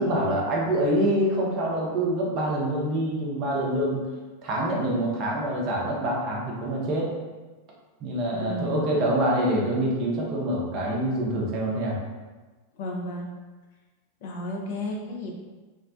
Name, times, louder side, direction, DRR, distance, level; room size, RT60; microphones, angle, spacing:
voice 1, 0.0-4.1 4.4-7.1 8.0-12.0, right 1 dB, 40° right, -3 dB, 0.6 m, -25 dB
voice 2, 8.3-8.9 12.7-13.3 14.2-15.3, left 2 dB, 50° left, -1 dB, 0.4 m, -33 dB
2.4 x 2.1 x 2.4 m, 1.3 s
figure-of-eight pair, 90°, 0 cm